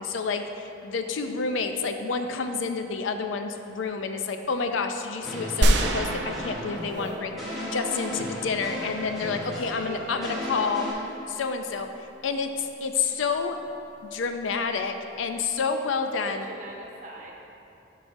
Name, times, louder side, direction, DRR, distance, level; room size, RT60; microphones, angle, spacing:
voice 1, 0.0-7.4 7.7-10.9 11.3-13.6 14.0-16.5, left 5 dB, 90° left, 7 dB, 0.4 m, -29 dB
sound 1, 5.2-10.9, equal, ahead, 1.0 m, -35 dB
sound 2, 5.6-7.5 7.9-8.0, right 1 dB, 65° right, 0.4 m, -25 dB
voice 2, 9.7-10.6 16.2-17.3, right 1 dB, 40° right, -1 dB, 0.8 m, -41 dB
10.5 x 4.7 x 2.6 m, 2.8 s
head